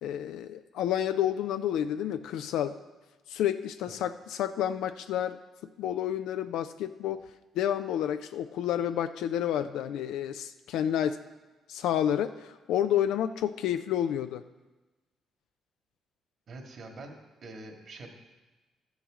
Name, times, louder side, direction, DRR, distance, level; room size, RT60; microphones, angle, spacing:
voice 1, 0.0-2.8 3.3-5.4 5.8-7.2 7.6-11.2 11.7-14.4, left 10 dB, 80° left, 9 dB, 0.4 m, -30 dB
voice 2, 16.5-18.1, right 2 dB, 60° right, 2 dB, 1.9 m, -45 dB
13.5 x 7.2 x 3.7 m, 1.2 s
supercardioid pair, 65°, 0 cm